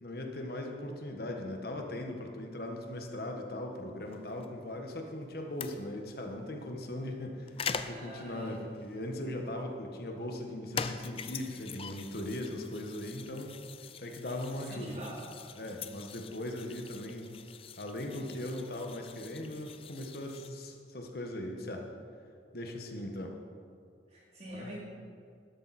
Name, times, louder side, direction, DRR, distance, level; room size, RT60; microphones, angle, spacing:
voice 1, 0.0-7.5 7.9-13.5 14.0-14.9 15.5-17.3 17.8-21.9 22.5-23.3 24.5-24.7, left 1 dB, 60° left, 3 dB, 1.5 m, -39 dB
sound 1, 4.1-20.5, left 6 dB, 30° left, 0.4 m, -44 dB
voice 2, 7.8-8.6 14.6-15.3 18.4-18.6 24.1-24.8, right 1 dB, 40° right, -5 dB, 3.1 m, -45 dB
12.5 x 12.0 x 4.3 m, 2.2 s
head